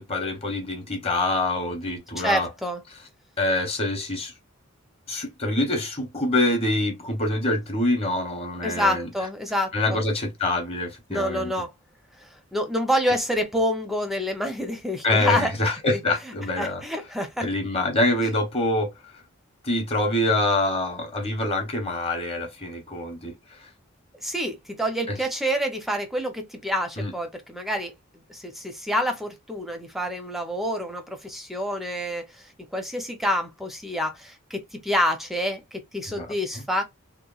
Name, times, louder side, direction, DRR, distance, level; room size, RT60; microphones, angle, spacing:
voice 1, 0.0-2.5 3.4-4.3 5.1-9.1 9.7-11.5 15.0-16.8 17.4-18.9 19.6-23.3 25.1-25.2 27.0-27.1 36.2-36.3 36.5-36.6, left 1 dB, 30° left, 0.9 m, -25 dB
voice 2, 2.2-2.8 8.6-10.0 11.1-11.7 12.2-15.5 15.9-16.0 16.6-17.5 24.2-27.9 28.3-36.8, equal, ahead, 0.5 m, -27 dB
2.9 x 2.1 x 2.2 m
head